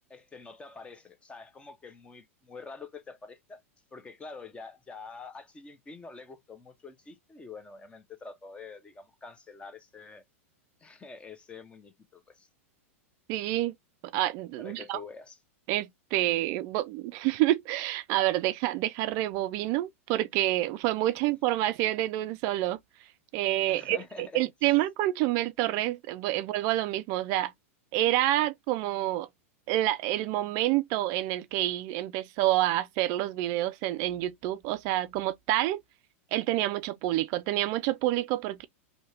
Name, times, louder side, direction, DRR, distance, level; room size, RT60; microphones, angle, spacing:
voice 1, 0.1-3.6 3.9-10.2 10.8-12.5 14.6-15.4 23.7-24.4, left 4 dB, 15° left, 0.7 m, -46 dB
voice 2, 13.3-13.7 14.1-15.0 15.7-22.8 23.3-27.5 27.9-29.3 29.7-35.8 36.3-38.7, right 15 dB, 45° right, 0.3 m, -28 dB
2.7 x 2.7 x 3.3 m
hypercardioid pair, 115°, 8 cm